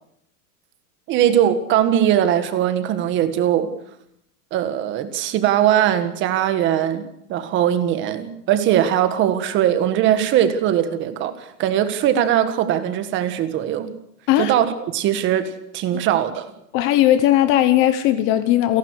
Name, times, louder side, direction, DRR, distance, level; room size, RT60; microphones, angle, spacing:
voice 1, 1.1-3.7 4.5-7.0 7.3-13.9 14.4-14.7 14.9-16.5, right 10 dB, 25° right, 1.6 m, -20 dB
voice 2, 16.7-18.8, left 13 dB, 25° left, 1.0 m, -17 dB
29.5 x 11.5 x 8.1 m
supercardioid pair, 160°, 47 cm